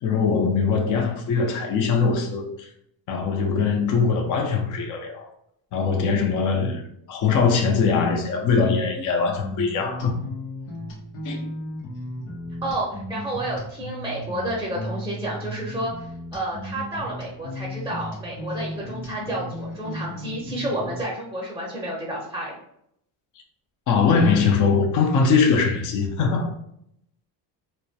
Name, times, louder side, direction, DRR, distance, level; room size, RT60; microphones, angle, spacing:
voice 1, 0.0-2.7 3.1-5.3 5.7-10.2 11.2-11.5 23.9-26.5, left 5 dB, 40° left, 0.5 m, -22 dB
sound 1, 9.3-21.0, equal, 90° left, 0.8 m, -35 dB
voice 2, 12.6-22.5, right 1 dB, 5° right, 0.6 m, -30 dB
2.2 x 2.1 x 2.6 m
supercardioid pair, 85°, 49 cm